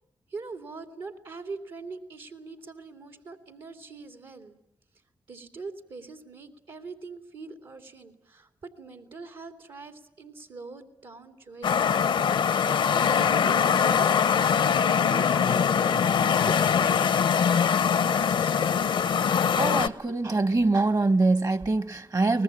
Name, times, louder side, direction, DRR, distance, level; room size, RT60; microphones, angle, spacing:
voice 1, 0.3-4.5 5.3-11.9 12.6-14.0 14.7-18.6, right 4 dB, 75° right, 2.6 m, -43 dB
sound 1, 11.6-19.9, left 7 dB, 85° left, 0.9 m, -23 dB
voice 2, 19.6-22.4, right 3 dB, 45° right, 1.3 m, -24 dB
23.5 x 19.5 x 9.9 m
supercardioid pair, 45°, 8 cm